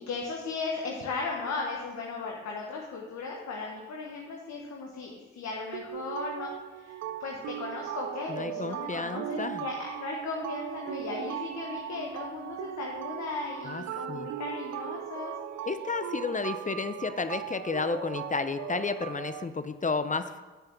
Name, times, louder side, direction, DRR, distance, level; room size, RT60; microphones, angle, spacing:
voice 1, 0.0-6.5 6.8-15.3, left 4 dB, 60° left, 0 dB, 1.3 m, -36 dB
sound 1, 5.7-19.4, right 12 dB, 55° right, 0.5 m, -38 dB
voice 2, 8.3-9.6 13.6-14.3 15.7-20.4, left 4 dB, 25° left, 10 dB, 0.7 m, -32 dB
6.8 x 5.9 x 6.8 m, 1.2 s
hypercardioid pair, 45°, 31 cm